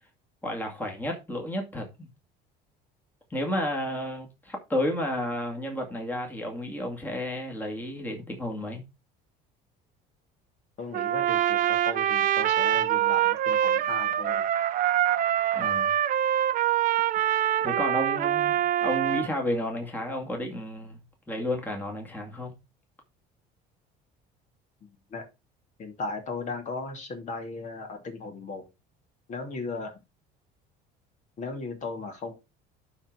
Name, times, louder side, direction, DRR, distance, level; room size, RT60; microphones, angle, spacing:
voice 1, 0.4-2.1 3.3-8.8 15.5-15.9 17.6-21.0 21.3-22.5, left 1 dB, 10° left, 2.2 m, -32 dB
voice 2, 10.8-14.5 24.8-25.3 25.8-28.7 29.3-29.9 31.4-32.3, left 3 dB, 40° left, 2.7 m, -36 dB
Trumpet, 10.9-19.3, right 11 dB, 50° right, 0.7 m, -25 dB
11.5 x 4.0 x 4.6 m
cardioid pair, 130°, 18 cm